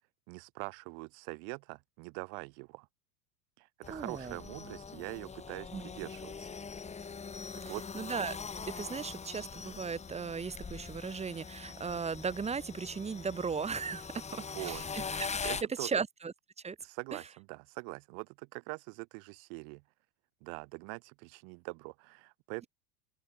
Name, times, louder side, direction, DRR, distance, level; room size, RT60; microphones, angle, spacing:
voice 1, 0.3-2.9 3.6-6.5 7.5-7.8 14.4-14.8 15.4-15.9 16.8-19.8 20.4-22.7, right 40 dB or more, 55° right, 5.2 m, -43 dB
sound 1, 3.8-15.6, left 5 dB, 15° left, 1.2 m, -42 dB
voice 2, 3.9-4.4 5.7-5.9 7.9-8.4 8.8-16.3 16.6-16.8 17.1-17.2, right 5 dB, 15° right, 1.0 m, -37 dB
open air
hypercardioid pair, 85°, 47 cm